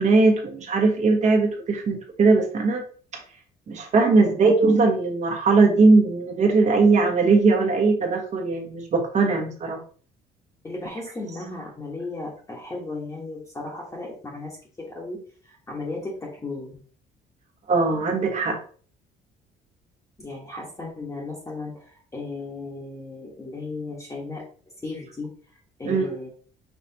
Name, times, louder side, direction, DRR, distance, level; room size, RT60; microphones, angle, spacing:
voice 1, 0.0-2.8 3.1-3.2 3.7-9.8 17.7-18.6 25.8-26.1, right 3 dB, 45° right, 2 dB, 1.3 m, -20 dB
voice 2, 10.6-16.7 20.2-24.4 24.8-26.3, left 3 dB, 20° left, -4 dB, 1.2 m, -35 dB
5.7 x 3.2 x 2.8 m, 0.43 s
cardioid pair, 110°, 17 cm